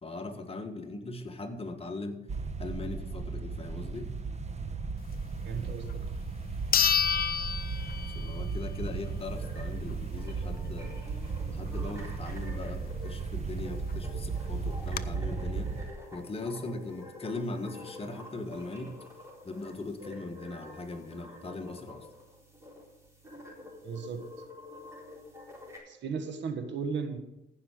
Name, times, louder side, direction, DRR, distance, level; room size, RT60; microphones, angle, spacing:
voice 1, 0.0-2.2 2.6-4.1 8.1-11.0 11.5-15.7 16.1-18.9 19.4-22.1, left 2 dB, 30° left, 5 dB, 1.5 m, -39 dB
sound 1, 2.3-15.9, right 4 dB, 35° right, 1.1 m, -35 dB
voice 2, 5.4-6.2 23.8-24.2 25.9-27.2, right 5 dB, 65° right, 8 dB, 1.5 m, -36 dB
sound 2, 5.9-6.0 6.7-8.5 8.9-9.0 13.6-13.7 13.9-14.0 14.6-15.0, left 8 dB, 50° left, 0.6 m, -28 dB
sound 3, 9.2-25.8, left 2 dB, 15° right, 3.9 m, -49 dB
15.0 x 5.7 x 6.5 m, 0.90 s
cardioid pair, 90°, 20 cm